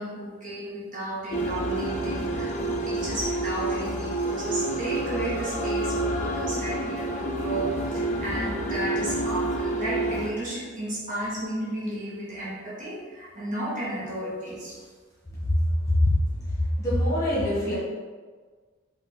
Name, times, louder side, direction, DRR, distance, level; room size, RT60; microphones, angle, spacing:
voice 1, 0.0-14.8, right 1 dB, 40° right, -8 dB, 1.2 m, -33 dB
sound 1, 1.3-10.3, right 1 dB, 35° left, 0.4 m, -28 dB
voice 2, 16.8-17.7, left 1 dB, 15° left, -9 dB, 1.5 m, -24 dB
5.0 x 2.5 x 4.0 m, 1.5 s
head